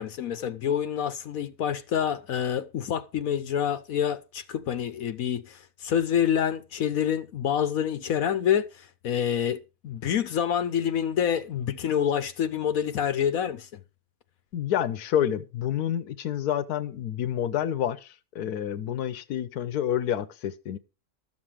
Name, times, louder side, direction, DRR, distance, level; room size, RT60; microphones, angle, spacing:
voice 1, 0.0-13.8, left 9 dB, 70° left, 1.2 m, -27 dB
voice 2, 14.5-20.8, left 10 dB, 85° left, 1.3 m, -28 dB
13.0 x 7.5 x 4.9 m
omnidirectional pair, 1.6 m